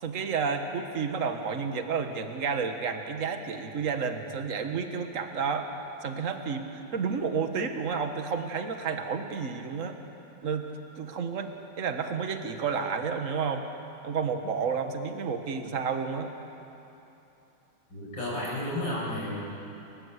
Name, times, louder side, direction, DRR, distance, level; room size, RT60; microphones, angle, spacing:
voice 1, 0.0-5.7 6.0-10.0 10.4-10.6 10.9-13.6 14.0-16.3, right 5 dB, 40° right, 6 dB, 1.6 m, -31 dB
voice 2, 17.9-19.4, left 1 dB, 60° left, -6 dB, 8.4 m, -32 dB
30.0 x 15.0 x 8.1 m, 3.0 s
omnidirectional pair, 2.2 m